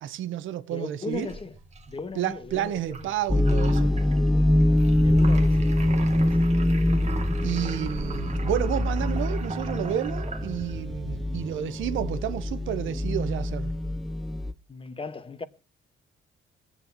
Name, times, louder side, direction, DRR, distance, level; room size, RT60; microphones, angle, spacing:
voice 1, 0.0-1.4 2.1-3.9 7.4-13.7, right 11 dB, 80° right, 0.8 m, -31 dB
voice 2, 0.7-1.5 1.9-3.1 5.0-6.5 14.7-15.4, left 4 dB, 25° left, 1.1 m, -37 dB
sound 1, 1.1-10.9, right 3 dB, 35° right, 1.4 m, -41 dB
sound 2, 3.3-14.5, left 1 dB, ahead, 0.7 m, -24 dB
25.0 x 8.3 x 2.8 m
cardioid pair, 90°, 20 cm